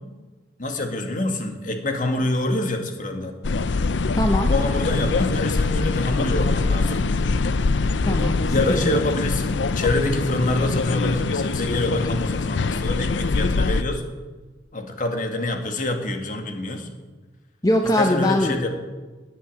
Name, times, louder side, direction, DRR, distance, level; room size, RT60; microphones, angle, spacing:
voice 1, 0.6-3.3 4.5-7.1 8.5-14.0 14.7-16.9 18.0-18.7, left 2 dB, 45° left, 4 dB, 2.1 m, -26 dB
sound 1, 3.4-13.8, left 3 dB, 85° left, 0.6 m, -23 dB
voice 2, 4.2-4.5 8.0-9.0 17.6-18.6, left 1 dB, 20° left, 3 dB, 1.1 m, -22 dB
19.0 x 8.7 x 7.7 m, 1.3 s
head